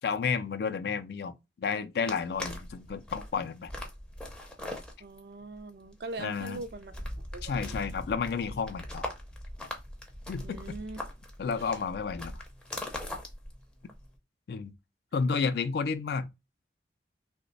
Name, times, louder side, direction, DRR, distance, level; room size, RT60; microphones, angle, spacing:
voice 1, 0.0-3.7 6.2-6.6 7.4-9.1 10.3-10.6 11.4-12.4 14.5-14.7 15.1-16.3, left 5 dB, 65° left, 0.3 m, -31 dB
sound 1, 2.0-14.2, left 1 dB, 5° left, 0.5 m, -41 dB
voice 2, 5.0-7.8 10.4-11.0 11.6-11.7, right 2 dB, 65° right, 0.4 m, -42 dB
2.9 x 2.1 x 3.8 m
head